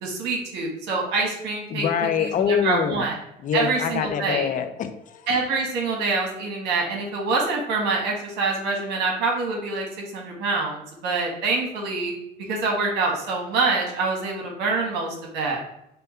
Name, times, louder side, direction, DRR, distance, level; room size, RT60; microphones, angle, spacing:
voice 1, 0.0-1.9 2.2-3.2 3.5-4.5 5.3-12.1 12.5-15.6, right 3 dB, 85° right, 0 dB, 1.3 m, -25 dB
voice 2, 1.7-3.0 3.4-5.3, left 8 dB, 50° left, 9 dB, 0.5 m, -25 dB
5.4 x 2.2 x 4.3 m, 0.80 s
cardioid pair, 110°, 17 cm